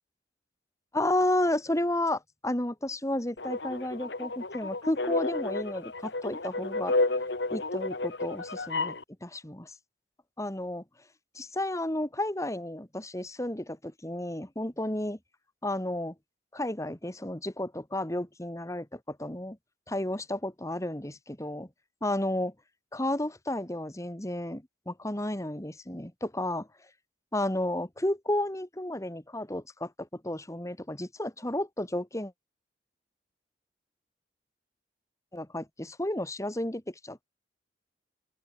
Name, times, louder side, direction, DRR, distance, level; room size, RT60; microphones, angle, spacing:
voice 1, 0.9-6.9 7.5-8.9 9.2-9.7 10.4-10.8 11.4-15.2 15.6-16.1 16.5-19.6 19.9-21.7 22.0-22.5 22.9-26.7 27.3-32.3 35.3-37.2, left 1 dB, 15° left, 2.1 m, -32 dB
sound 1, 3.4-9.0, left 2 dB, 80° left, 2.2 m, -31 dB
open air
head